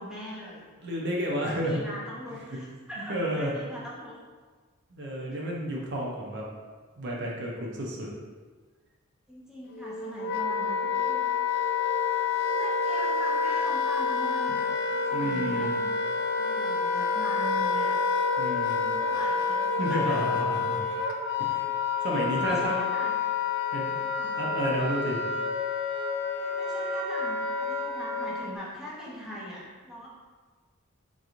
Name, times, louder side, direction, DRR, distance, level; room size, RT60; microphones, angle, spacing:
voice 1, 0.0-0.6 1.4-4.2 9.3-11.3 12.4-15.9 16.4-18.0 18.9-20.3 22.0-23.2 24.2-24.4 26.3-30.1, equal, 5° right, -7 dB, 0.6 m, -41 dB
voice 2, 0.8-1.8 3.1-3.5 4.9-6.5 7.0-8.1 15.1-15.8 18.4-19.0 19.8-20.8 21.4-21.7 22.0-22.8 23.7-25.2, equal, 55° right, -2 dB, 0.6 m, -31 dB
Wind instrument woodwind instrument, 9.7-28.6, left 5 dB, 55° left, 0.3 m, -28 dB
3.8 x 3.0 x 2.4 m, 1.4 s
head